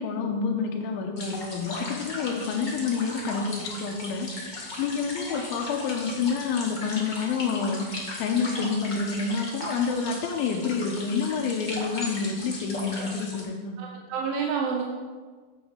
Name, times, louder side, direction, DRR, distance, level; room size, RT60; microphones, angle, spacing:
voice 1, 0.0-13.7, left 5 dB, 85° left, 2 dB, 2.6 m, -28 dB
sound 1, 1.2-13.4, left 1 dB, 40° left, 0.6 m, -37 dB
voice 2, 13.8-14.8, right 6 dB, 80° right, 0 dB, 2.5 m, -29 dB
9.0 x 7.9 x 5.0 m, 1.5 s
omnidirectional pair, 4.3 m